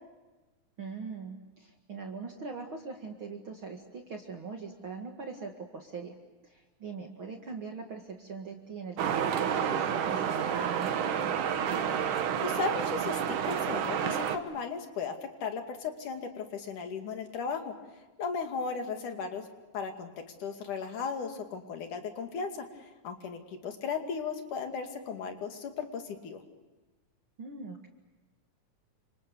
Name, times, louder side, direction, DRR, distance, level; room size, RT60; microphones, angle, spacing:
voice 1, 0.8-6.2 6.4-11.4 27.4-27.9, right 4 dB, 45° right, 2 dB, 2.5 m, -41 dB
sound 1, 9.0-14.4, right 8 dB, 80° right, 2.9 m, -30 dB
voice 2, 12.4-17.7 18.2-19.4 19.7-20.1 20.4-26.4, left 5 dB, 80° left, 5 dB, 4.0 m, -36 dB
29.5 x 26.5 x 7.0 m, 1.2 s
omnidirectional pair, 3.6 m